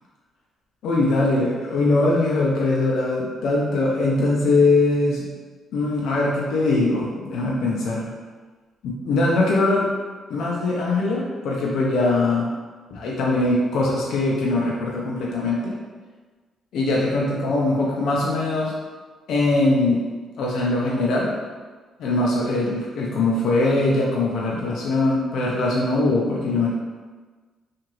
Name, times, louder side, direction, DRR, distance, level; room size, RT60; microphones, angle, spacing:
voice 1, 0.8-5.3 5.7-8.1 8.8-9.9 10.3-12.5 12.9-15.7 16.7-18.7 19.3-20.0 20.4-21.3 22.0-26.7, left 2 dB, 75° left, -4 dB, 0.5 m, -21 dB
2.8 x 2.5 x 3.0 m, 1.4 s
cardioid pair, 90°, 0 cm